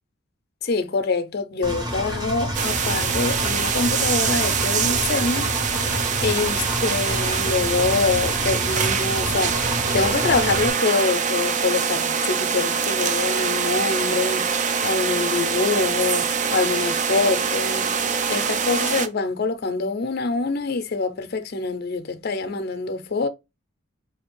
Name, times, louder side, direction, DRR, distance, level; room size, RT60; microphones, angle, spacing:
voice 1, 0.6-5.8 6.2-18.0 18.3-23.3, left 4 dB, 50° left, 0.5 m, -25 dB
Engine, 1.6-10.7, equal, 20° right, 0.8 m, -28 dB
sound 1, 2.5-19.1, right 6 dB, 35° right, 0.4 m, -24 dB
5.1 x 2.8 x 3.0 m
head